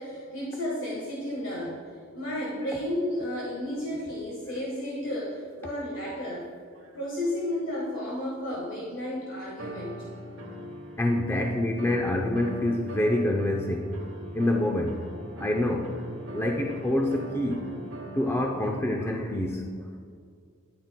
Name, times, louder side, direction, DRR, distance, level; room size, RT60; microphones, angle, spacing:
voice 1, 0.0-1.9 2.1-6.5 6.9-9.9, left 1 dB, 65° left, -5 dB, 1.5 m, -32 dB
sound 1, 4.1-4.2 5.3-6.4 6.7-7.7 9.6-11.1 11.8-18.3, right 1 dB, 65° right, 1.0 m, -41 dB
voice 2, 11.0-13.9 14.3-15.0 15.4-16.0 16.3-17.7 18.1-19.7, left 1 dB, 10° left, 0 dB, 0.5 m, -26 dB
10.5 x 9.6 x 2.2 m, 2.2 s
head